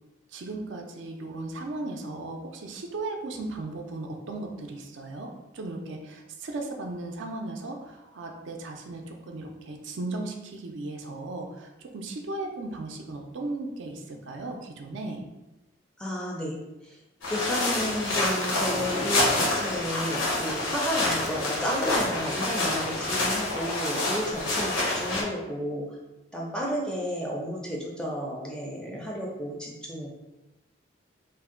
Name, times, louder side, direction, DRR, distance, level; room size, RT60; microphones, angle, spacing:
voice 1, 0.3-15.2, right 2 dB, 70° right, 2 dB, 0.4 m, -36 dB
voice 2, 16.0-16.6 16.8-17.0 17.3-25.9 26.3-30.1, equal, 5° left, -3 dB, 0.4 m, -32 dB
sound 1, 17.2-25.2, left 2 dB, 85° left, 0.8 m, -27 dB
2.6 x 2.1 x 3.6 m, 1.0 s
head